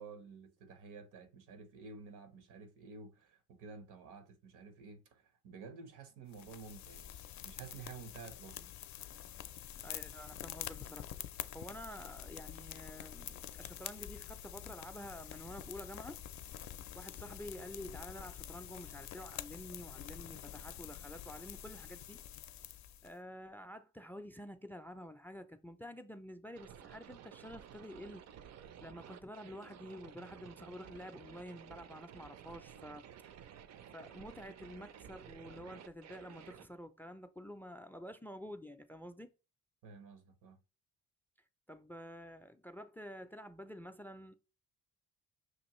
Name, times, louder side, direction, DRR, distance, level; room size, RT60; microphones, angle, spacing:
voice 1, 0.0-8.7 39.8-40.6, right 5 dB, 85° right, 0.9 m, -52 dB
sound 1, 6.3-23.1, left 11 dB, 65° left, 0.5 m, -47 dB
voice 2, 9.8-11.1 11.5-16.2 17.0-22.2 23.0-28.4 28.8-33.0 33.9-39.3 41.7-44.3, equal, 5° left, 0.3 m, -49 dB
sound 2, 26.5-36.7, right 9 dB, 60° right, 0.5 m, -54 dB
6.0 x 2.5 x 3.0 m
cardioid pair, 100°, 31 cm